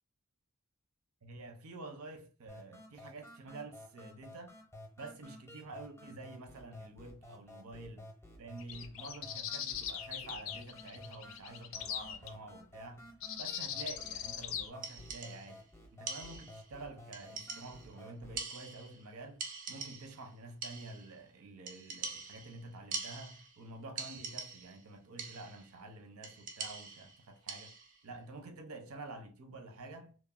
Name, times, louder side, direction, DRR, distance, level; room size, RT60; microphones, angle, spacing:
voice 1, 1.2-4.5 5.0-8.1 8.4-13.1 13.4-27.8 28.0-30.2, right 2 dB, 85° right, 0.6 m, -49 dB
sound 1, 2.5-18.5, left 1 dB, 10° left, 0.6 m, -53 dB
sound 2, 8.6-12.3 13.2-14.7, left 9 dB, 65° left, 0.4 m, -40 dB
sound 3, 14.8-15.6 16.1-16.7 17.1-18.0 18.4-19.1 19.4-20.3 20.6-21.2 21.7-23.6 24.0-24.8 25.2-25.7 26.2-28.0, right 5 dB, 40° right, 0.4 m, -44 dB
3.0 x 2.1 x 2.3 m
head